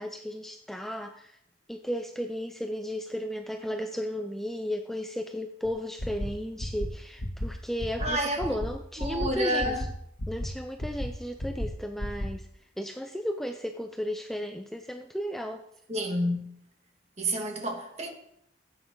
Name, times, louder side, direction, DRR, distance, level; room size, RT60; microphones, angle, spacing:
voice 1, 0.0-1.4 1.7-9.9 10.3-15.6, equal, ahead, 0.5 m, -34 dB
sound 1, 5.6-5.7 6.0-6.3 6.6-6.9 7.2-7.5 7.8-8.1 8.4-8.7 9.0-9.3 9.6-9.9 10.2-10.5 10.8-11.1 11.4-11.7 12.0-12.3, equal, 75° left, 1.9 m, -32 dB
voice 2, 8.0-8.4 9.0-9.8 15.9-16.6 17.2-18.1, equal, 35° right, 1.8 m, -29 dB
15.5 x 8.6 x 3.8 m
head